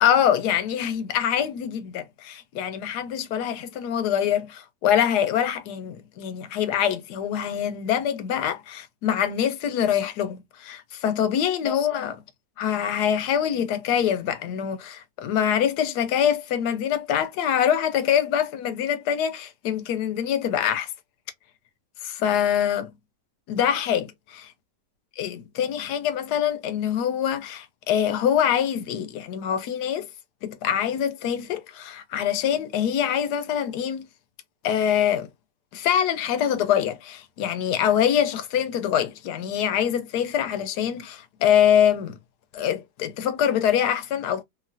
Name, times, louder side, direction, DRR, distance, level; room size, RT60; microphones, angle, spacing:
voice 1, 0.0-12.2 12.6-20.9 22.0-22.9 23.5-24.4 25.2-30.1 30.4-34.1 34.6-35.3 35.7-42.2 42.5-44.4, left 9 dB, 75° left, 1.1 m, -24 dB
3.0 x 2.6 x 2.5 m
omnidirectional pair, 1.8 m